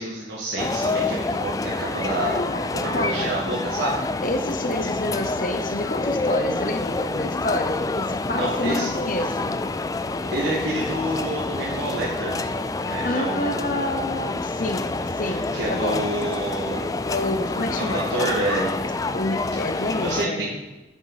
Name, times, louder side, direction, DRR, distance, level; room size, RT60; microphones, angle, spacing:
voice 1, 0.0-2.4 2.7-4.0 8.4-8.9 10.3-12.4 12.9-13.8 15.2-17.0 17.7-18.8 19.7-20.5, right 1 dB, 90° right, -6 dB, 1.8 m, -28 dB
sound 1, 0.6-20.3, left 3 dB, 20° left, 0.3 m, -27 dB
voice 2, 2.2-3.4 4.2-9.6 12.8-16.1 17.1-18.3 19.1-20.6, left 1 dB, 50° left, 7 dB, 0.8 m, -29 dB
11.0 x 7.5 x 4.1 m, 1.1 s
head